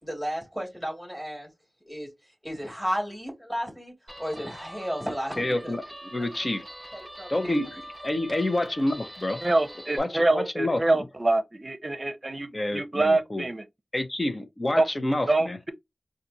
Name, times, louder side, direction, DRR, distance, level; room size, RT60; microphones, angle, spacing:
voice 1, 0.0-1.5 1.9-5.7 6.2-6.3 6.9-7.5, equal, 5° right, 2.8 m, -33 dB
Guitar, 4.1-10.0, equal, 20° right, 2.2 m, -43 dB
voice 2, 5.4-6.6 7.3-7.7 8.0-9.5 10.0-11.1 12.5-13.4 13.9-15.6, left 1 dB, 40° left, 1.0 m, -28 dB
voice 3, 9.4-13.6 14.8-14.9 15.3-15.7, right 2 dB, 40° right, 0.7 m, -25 dB
4.1 x 2.6 x 2.9 m
wide cardioid pair, 55°, 0 cm